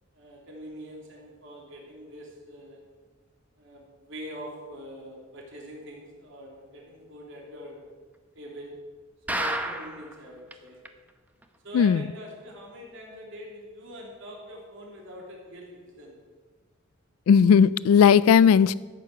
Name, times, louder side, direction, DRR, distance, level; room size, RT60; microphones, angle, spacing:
voice 1, 0.1-2.8 3.6-7.8 8.3-8.7 9.3-10.8 11.6-16.2, equal, 60° right, -2 dB, 3.1 m, -43 dB
sound 1, 9.3-10.1 10.5-10.6 10.9-11.0 11.4-11.5, right 1 dB, 10° right, 0.8 m, -30 dB
voice 2, 17.3-18.7, left 7 dB, 90° left, 19 dB, 0.3 m, -17 dB
14.0 x 8.5 x 6.7 m, 1.4 s
head